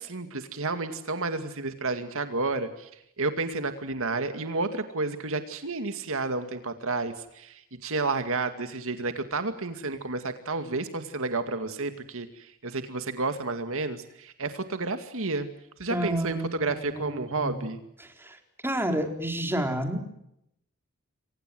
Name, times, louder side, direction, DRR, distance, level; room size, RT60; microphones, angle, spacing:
voice 1, 0.0-2.9 3.2-15.5 15.8-17.8, right 3 dB, 65° right, 8 dB, 2.2 m, -31 dB
voice 2, 15.9-17.5 18.2-18.4 18.6-20.0, right 1 dB, 10° right, 5 dB, 4.0 m, -30 dB
29.0 x 24.0 x 7.8 m, 0.78 s
head